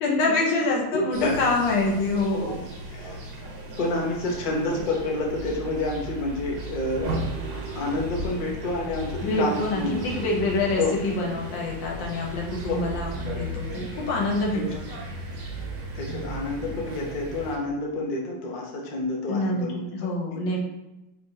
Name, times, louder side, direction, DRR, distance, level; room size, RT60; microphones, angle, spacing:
voice 1, 0.0-2.5 9.2-15.0 19.3-20.6, left 2 dB, 70° left, -1 dB, 1.6 m, -26 dB
voice 2, 0.9-1.4 2.3-2.5 2.9-3.2 3.8-7.1 7.5-10.0 10.8-10.9 12.7-12.8 14.5-14.7 15.9-19.8 20.3-20.4, left 2 dB, 90° left, -1 dB, 0.4 m, -29 dB
sound 1, 1.1-17.6, right 1 dB, 80° right, 2.1 m, -35 dB
4.9 x 3.4 x 2.8 m, 0.96 s
omnidirectional pair, 2.2 m